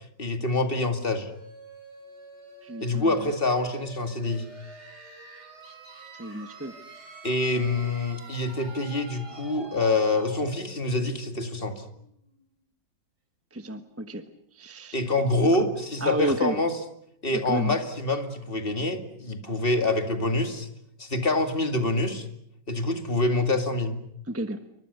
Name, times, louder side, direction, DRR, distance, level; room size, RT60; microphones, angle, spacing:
voice 1, 0.2-1.3 2.8-4.4 7.2-11.8 14.9-16.7 17.2-20.7 21.0-22.3 22.7-24.0, left 2 dB, 30° left, 6 dB, 2.5 m, -26 dB
sound 1, 1.0-12.6, right 3 dB, 65° right, 5.7 m, -47 dB
voice 2, 2.6-3.3 6.2-6.8 13.5-14.3 14.5-15.0 15.6-15.7 16.0-16.6 17.4-17.8 24.3-24.6, right 1 dB, 10° right, 8 dB, 1.1 m, -31 dB
29.0 x 24.5 x 6.9 m, 0.76 s
omnidirectional pair, 1.9 m